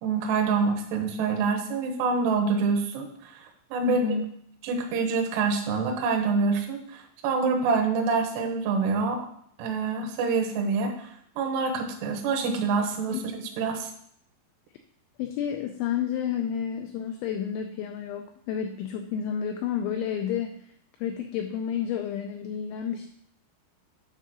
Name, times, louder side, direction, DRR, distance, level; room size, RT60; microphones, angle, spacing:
voice 1, 0.0-4.0 4.6-9.3 9.6-13.2 13.6-13.9, right 4 dB, 75° right, 2 dB, 2.7 m, -26 dB
voice 2, 3.8-4.3 13.4-13.5 15.2-20.6 21.0-23.1, left 8 dB, 85° left, 5 dB, 2.6 m, -30 dB
9.2 x 3.9 x 6.0 m, 0.66 s
omnidirectional pair, 5.8 m